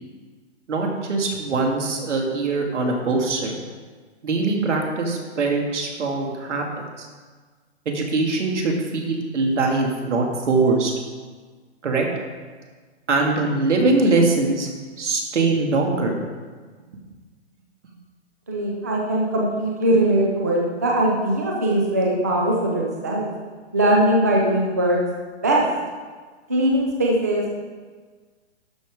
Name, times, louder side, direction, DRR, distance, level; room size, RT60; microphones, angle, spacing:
voice 1, 0.7-3.5 4.2-7.1 7.9-10.9 11.8-12.1 13.1-14.7 15.0-16.2, right 3 dB, 80° right, 1 dB, 2.4 m, -22 dB
voice 2, 18.5-23.3 23.7-25.0 25.4-25.6 26.5-27.5, right 1 dB, 15° right, -2 dB, 0.4 m, -20 dB
12.5 x 5.7 x 4.9 m, 1.4 s
hypercardioid pair, 170°, 35 cm